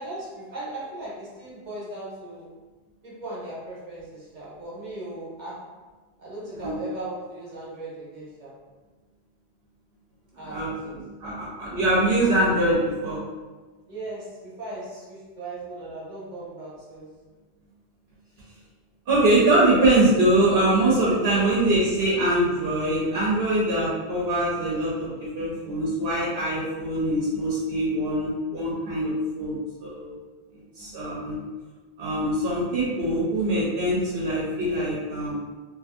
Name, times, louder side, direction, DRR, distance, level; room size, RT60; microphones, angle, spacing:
voice 1, 0.0-2.5 3.0-5.6 6.2-8.5 10.4-11.0 11.2-11.4 13.9-17.1 21.2-21.6, right 2 dB, 50° right, -7 dB, 1.0 m, -38 dB
voice 2, 11.2-13.2 19.1-30.2 30.8-31.4 32.0-35.3, right 1 dB, 75° right, -6 dB, 0.9 m, -23 dB
2.7 x 2.5 x 2.5 m, 1.3 s
omnidirectional pair, 1.0 m